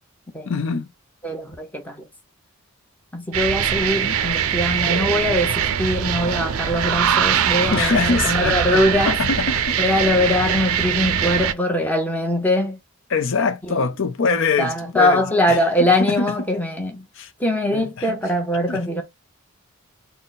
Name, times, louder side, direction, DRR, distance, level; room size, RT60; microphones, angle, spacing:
voice 1, 0.5-0.9 7.7-9.8 13.1-15.2 15.5-16.3 17.2-17.3 17.7-18.2 18.7-18.8, left 5 dB, 55° left, 0.5 m, -23 dB
voice 2, 1.2-2.1 3.1-9.2 9.8-12.8 13.6-13.8 14.6-17.1 17.4-19.0, left 1 dB, 5° left, 0.8 m, -22 dB
sound 1, 3.3-11.5, right 8 dB, 75° right, 0.4 m, -22 dB
3.9 x 2.1 x 3.9 m
head